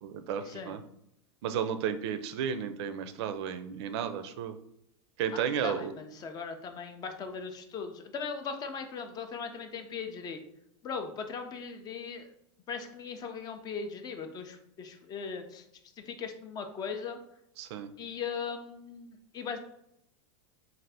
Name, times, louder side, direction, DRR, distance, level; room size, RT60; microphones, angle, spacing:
voice 1, 0.0-0.8 1.4-4.6 5.2-5.9 17.6-17.9, right 8 dB, 65° right, 9 dB, 0.4 m, -33 dB
voice 2, 5.3-10.4 10.8-12.3 12.7-15.6 16.0-17.2 18.0-19.6, left 5 dB, 25° left, 7 dB, 0.4 m, -39 dB
2.6 x 2.4 x 3.3 m, 0.76 s
supercardioid pair, 125°, 15 cm